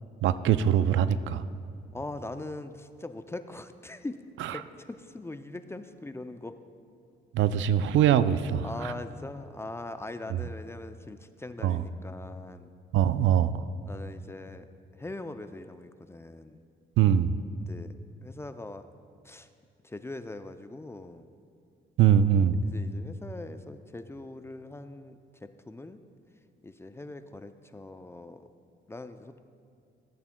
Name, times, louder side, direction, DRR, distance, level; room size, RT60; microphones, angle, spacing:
voice 1, 0.2-1.4 4.4-4.5 7.3-8.9 10.3-10.4 11.6-11.8 12.9-13.6 17.0-17.3 22.0-22.6, right 9 dB, 75° right, 14 dB, 0.4 m, -23 dB
voice 2, 1.9-4.2 4.5-6.6 8.6-12.7 13.9-14.7 15.0-16.6 17.6-17.9 18.2-18.9 19.2-19.5 19.8-21.3 22.6-26.0 26.6-28.5 28.9-29.4, left 2 dB, 15° left, 10 dB, 0.4 m, -41 dB
16.5 x 8.3 x 2.2 m, 2.4 s
cardioid pair, 90°, 20 cm